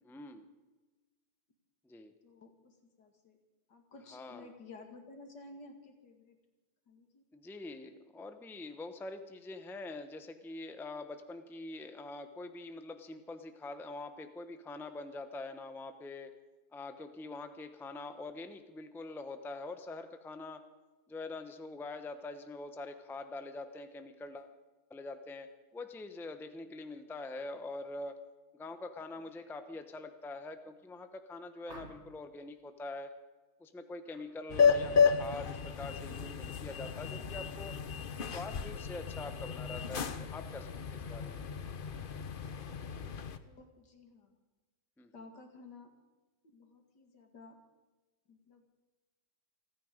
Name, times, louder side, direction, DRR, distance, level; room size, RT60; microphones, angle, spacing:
voice 1, 0.1-0.5 1.8-2.1 4.1-4.5 7.3-16.3 16.7-20.6 21.1-24.5 24.9-25.5 25.7-28.2 28.5-33.1 33.6-37.7 38.3-41.4 45.0-45.1, left 2 dB, ahead, 8 dB, 0.8 m, -44 dB
voice 2, 2.2-3.4 3.7-6.4 6.9-7.2 43.4-44.3 45.1-45.9 46.4-47.6 48.3-48.7, left 3 dB, 80° left, 4 dB, 2.7 m, -54 dB
sound 1, 31.7-32.3 34.0-34.3 34.7-35.1, right 2 dB, 40° right, 2.5 m, -53 dB
sound 2, 34.5-43.4, left 6 dB, 45° left, 0.7 m, -32 dB
28.5 x 9.7 x 5.3 m, 1.2 s
omnidirectional pair, 1.8 m